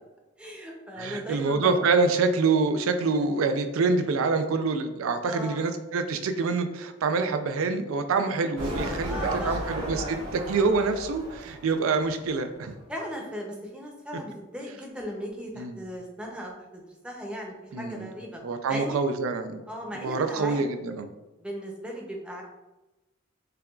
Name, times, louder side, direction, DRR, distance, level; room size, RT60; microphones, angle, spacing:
voice 1, 0.4-1.7 5.2-5.7 9.0-9.7 12.9-18.4 18.7-19.0 19.7-20.6 21.4-22.4, equal, 5° right, -1 dB, 0.6 m, -37 dB
voice 2, 1.0-12.7 15.6-15.8 17.7-18.1 18.4-19.6 19.9-21.1, right 4 dB, 85° right, 8 dB, 0.4 m, -26 dB
sound 1, 8.6-12.4 12.7-12.8, right 1 dB, 60° right, 1.3 m, -34 dB
6.6 x 2.3 x 2.3 m, 1.1 s
head